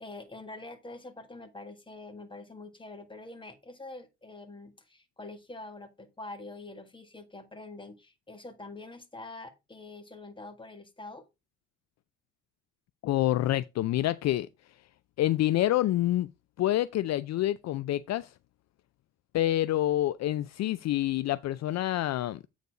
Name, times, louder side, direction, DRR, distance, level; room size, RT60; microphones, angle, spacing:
voice 1, 0.0-11.2, left 2 dB, 15° left, 1.6 m, -45 dB
voice 2, 13.0-14.5 15.2-16.3 16.6-18.3 19.3-22.4, left 14 dB, 60° left, 0.4 m, -27 dB
8.4 x 4.0 x 4.7 m
cardioid pair, 90°, 30 cm